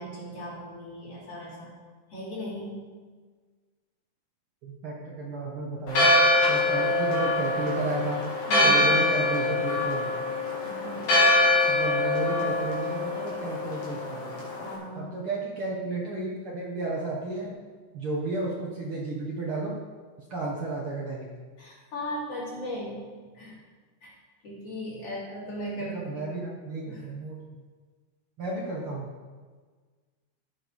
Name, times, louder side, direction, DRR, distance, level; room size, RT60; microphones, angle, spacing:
voice 1, 0.0-1.8 2.1-2.8 8.5-9.1 10.5-11.2 14.6-15.1 21.6-23.6 24.0-24.1 24.4-26.4 26.9-27.1, equal, 50° left, -8 dB, 4.3 m, -37 dB
voice 2, 4.6-6.1 6.5-8.2 8.6-10.1 11.7-14.3 14.9-17.5 17.9-19.8 20.3-21.3 25.8-27.4 28.4-29.1, right 2 dB, 55° right, -4 dB, 1.9 m, -33 dB
Church bell, 5.9-14.7, left 1 dB, 85° left, 4.2 m, -24 dB
14.5 x 6.3 x 4.8 m, 1.5 s
omnidirectional pair, 3.5 m